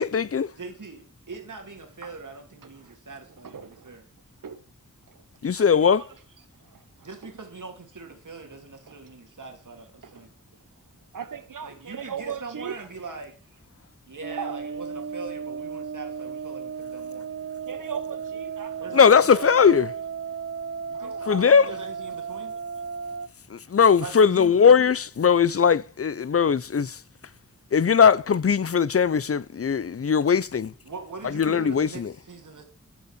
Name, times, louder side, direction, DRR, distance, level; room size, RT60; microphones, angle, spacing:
voice 1, 0.0-0.5 5.4-6.0 18.9-19.9 21.3-21.7 23.5-27.0 27.7-30.7 31.3-32.1, left 6 dB, 45° left, 0.6 m, -19 dB
voice 2, 0.5-4.0 7.0-10.3 11.6-13.3 14.1-17.3 18.8-19.8 20.9-22.5 24.0-24.5 30.8-32.6, right 3 dB, 70° right, 2.9 m, -41 dB
voice 3, 3.4-4.0 4.4-4.6 5.1-5.2 5.7-6.1 6.6-6.8 7.2-7.3 8.9-9.0 10.0-10.1 11.1-12.9 14.3-14.6 17.6-19.0 19.4-19.5 20.9-21.5, right 7 dB, 85° right, 1.0 m, -38 dB
sound 1, 14.2-23.3, right 6 dB, 45° right, 0.6 m, -35 dB
15.0 x 5.5 x 8.3 m
wide cardioid pair, 65°, 32 cm